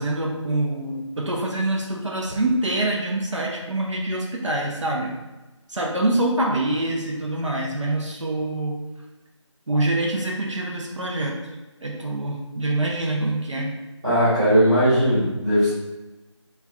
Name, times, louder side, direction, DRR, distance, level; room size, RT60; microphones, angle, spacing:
voice 1, 0.0-5.1 5.7-8.7 9.7-11.4 11.8-13.7, right 1 dB, 75° right, -2 dB, 0.6 m, -25 dB
voice 2, 14.0-15.7, equal, 10° right, -16 dB, 0.9 m, -18 dB
3.3 x 2.3 x 2.4 m, 1.1 s
figure-of-eight pair, 170°, 16 cm